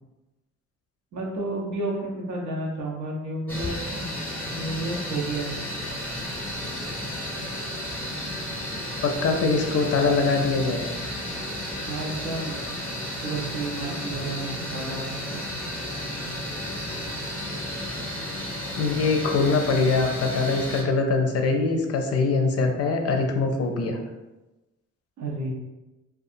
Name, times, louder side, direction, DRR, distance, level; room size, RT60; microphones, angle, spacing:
voice 1, 1.1-5.5 11.9-12.6 13.2-15.0 15.3-15.4 25.2-25.5, right 2 dB, 70° right, -2 dB, 0.8 m, -31 dB
sound 1, 3.5-20.8, left 1 dB, 5° left, 0.8 m, -33 dB
voice 2, 9.0-10.9 18.8-24.0, left 4 dB, 55° left, 3 dB, 0.5 m, -23 dB
2.7 x 2.3 x 2.5 m, 1.1 s
cardioid pair, 90°, 30 cm